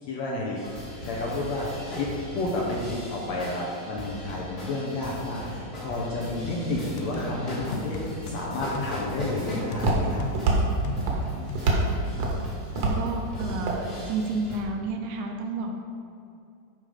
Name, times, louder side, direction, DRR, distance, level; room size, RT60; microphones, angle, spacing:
voice 1, 0.0-10.2, left 2 dB, 70° left, -4 dB, 1.8 m, -31 dB
sound 1, 0.6-14.6, left 1 dB, 30° left, 1.2 m, -39 dB
sound 2, 7.0-8.4 8.8-11.9, left 5 dB, 90° left, 2.4 m, -37 dB
Walk footsteps, 8.4-14.6, right 2 dB, 65° right, 1.9 m, -28 dB
voice 2, 11.3-12.3 12.8-15.8, right 3 dB, 80° right, 3 dB, 2.4 m, -32 dB
10.5 x 3.8 x 4.9 m, 2.5 s
omnidirectional pair, 3.9 m